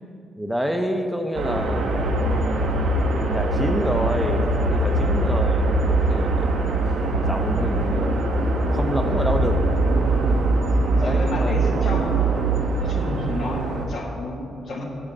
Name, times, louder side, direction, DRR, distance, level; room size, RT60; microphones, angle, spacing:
voice 1, 0.4-2.1 3.2-6.5 7.2-8.2 8.7-9.6 11.0-11.8, equal, 5° right, 5 dB, 0.7 m, -27 dB
sound 1, 1.3-13.8, right 2 dB, 75° right, 0.9 m, -22 dB
voice 2, 4.8-5.1 10.0-10.4 10.9-12.4 12.7-14.8, left 2 dB, 65° left, -1 dB, 1.4 m, -32 dB
7.1 x 4.9 x 6.7 m, 2.5 s
hypercardioid pair, 45°, 0 cm